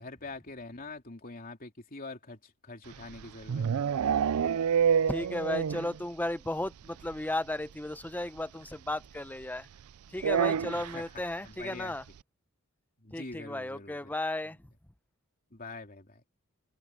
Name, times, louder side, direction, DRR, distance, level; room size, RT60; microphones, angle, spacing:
voice 1, 0.0-4.0 10.7-11.0 11.4-12.0 13.0-14.1 15.5-16.2, left 3 dB, 40° left, 3.1 m, -44 dB
sound 1, 2.9-6.0 6.2-6.3 6.7-6.8 7.0-7.1 8.4-8.5 10.2-11.0, right 7 dB, 85° right, 0.4 m, -27 dB
voice 2, 5.1-9.7 10.1-12.0 13.1-14.6, left 1 dB, 10° left, 0.7 m, -34 dB
head